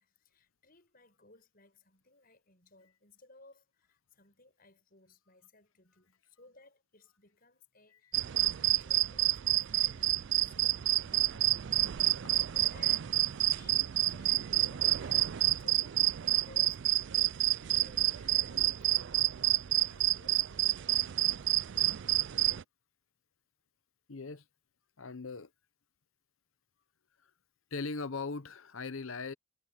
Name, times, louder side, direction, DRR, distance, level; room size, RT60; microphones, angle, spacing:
voice 1, 0.0-11.7 12.2-16.9 17.7-19.1 19.6-21.6, left 2 dB, 40° left, 6.7 m, -61 dB
sound 1, 8.1-22.6, right 13 dB, 55° right, 0.4 m, -29 dB
voice 2, 24.1-24.4 25.0-25.5 27.7-29.3, left 4 dB, 65° left, 0.9 m, -39 dB
head